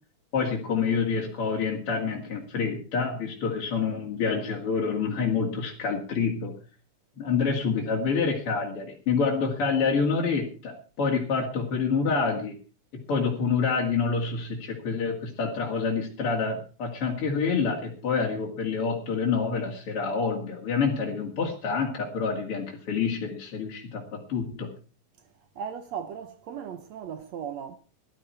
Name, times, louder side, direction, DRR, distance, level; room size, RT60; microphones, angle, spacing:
voice 1, 0.3-6.5 7.2-12.6 12.9-24.7, left 5 dB, 45° left, 2.8 m, -27 dB
voice 2, 25.5-27.8, right 8 dB, 70° right, 1.7 m, -37 dB
18.0 x 12.0 x 4.7 m
omnidirectional pair, 4.1 m